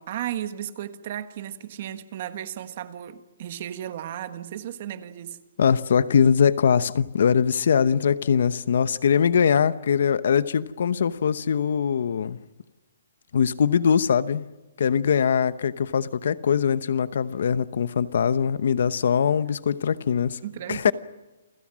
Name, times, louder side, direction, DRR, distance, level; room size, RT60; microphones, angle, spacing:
voice 1, 0.0-5.4 20.4-20.9, right 11 dB, 35° right, 1.6 m, -34 dB
voice 2, 5.6-12.4 13.3-14.5 14.8-20.4 20.7-20.9, left 7 dB, 55° left, 0.9 m, -22 dB
29.5 x 23.5 x 6.3 m
hypercardioid pair, 175°, 0 cm